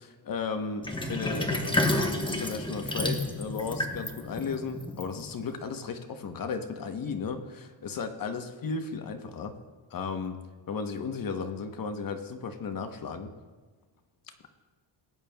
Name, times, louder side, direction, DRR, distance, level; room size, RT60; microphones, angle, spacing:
voice 1, 0.3-0.8 1.1-9.5 9.9-10.4 10.7-13.3, left 5 dB, 45° left, 7 dB, 1.0 m, -34 dB
Sink (filling or washing), 0.8-5.6, left 1 dB, 10° left, 1.1 m, -31 dB
18.0 x 8.9 x 2.3 m, 1.3 s
cardioid pair, 90°, 46 cm